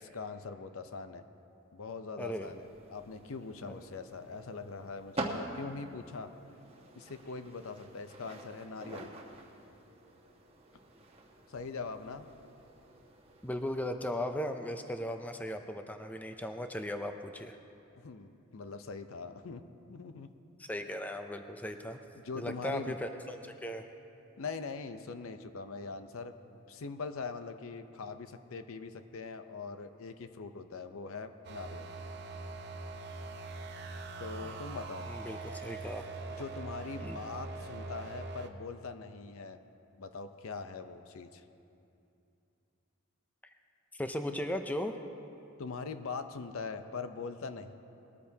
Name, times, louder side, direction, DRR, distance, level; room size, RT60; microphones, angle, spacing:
voice 1, 0.0-1.2 1.7-6.3 7.0-9.1 11.5-12.3 18.0-19.6 19.9-20.3 22.1-23.0 24.4-26.3 26.7-31.9 34.2-35.1 36.4-39.6 40.0-41.4 45.6-47.7, left 4 dB, 70° left, 9 dB, 0.6 m, -42 dB
voice 2, 2.2-2.5 3.7-3.8 13.4-17.6 20.6-22.0 22.3-23.8 34.4-34.6 35.1-36.1 37.0-37.2 43.9-44.9, left 1 dB, 5° left, 6 dB, 0.5 m, -37 dB
sound 1, 2.4-13.9, right 2 dB, 30° right, 1.1 m, -46 dB
sound 2, 31.4-38.5, right 3 dB, 50° right, 0.8 m, -42 dB
20.5 x 13.5 x 2.8 m, 2.7 s
head